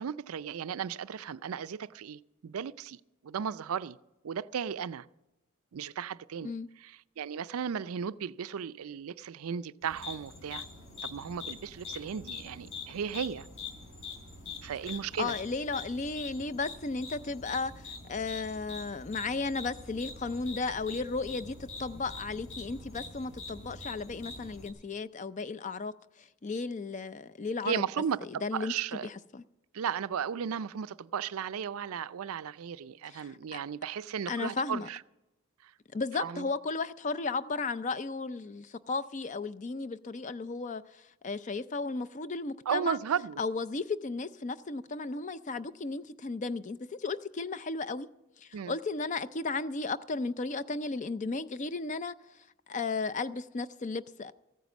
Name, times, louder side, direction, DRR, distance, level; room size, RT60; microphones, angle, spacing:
voice 1, 0.0-4.0 4.2-5.1 5.7-6.5 6.8-10.6 11.0-13.5 14.6-15.4 27.6-29.1 29.7-35.0 35.6-35.7 36.2-36.5 42.7-43.4 48.5-48.8, right 7 dB, 80° right, 0.4 m, -35 dB
sound 1, 9.8-24.7, left 4 dB, 60° left, 3.9 m, -44 dB
voice 2, 15.2-27.8 28.4-28.7 29.3-29.4 33.1-33.2 34.3-34.9 35.9-43.0 43.4-48.1 48.4-52.1 52.7-54.3, left 3 dB, 35° left, 0.4 m, -34 dB
14.5 x 9.3 x 7.1 m
head